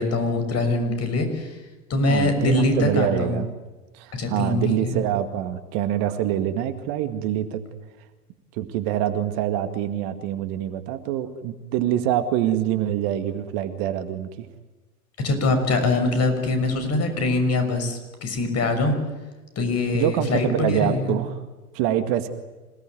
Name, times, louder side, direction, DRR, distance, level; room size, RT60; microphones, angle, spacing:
voice 1, 0.0-1.6 1.9-3.4 4.1-5.0 15.2-18.9 19.6-21.2, left 2 dB, 35° left, 7 dB, 6.2 m, -23 dB
voice 2, 2.0-3.5 3.9-7.6 8.5-14.5 19.9-21.4 21.7-22.3, right 11 dB, 50° right, 9 dB, 2.2 m, -25 dB
27.0 x 18.5 x 9.4 m, 1.2 s
hypercardioid pair, 90°, 45 cm